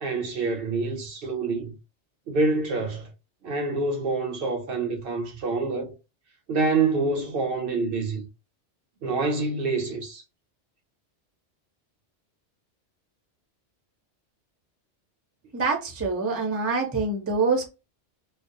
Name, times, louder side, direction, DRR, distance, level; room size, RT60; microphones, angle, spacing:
voice 1, 0.0-1.8 2.3-3.1 3.4-5.9 6.5-8.3 9.0-10.2, right 3 dB, 65° right, 0.7 m, -26 dB
voice 2, 15.5-17.7, right 4 dB, 20° right, 0.4 m, -25 dB
2.4 x 2.0 x 2.5 m
omnidirectional pair, 1.2 m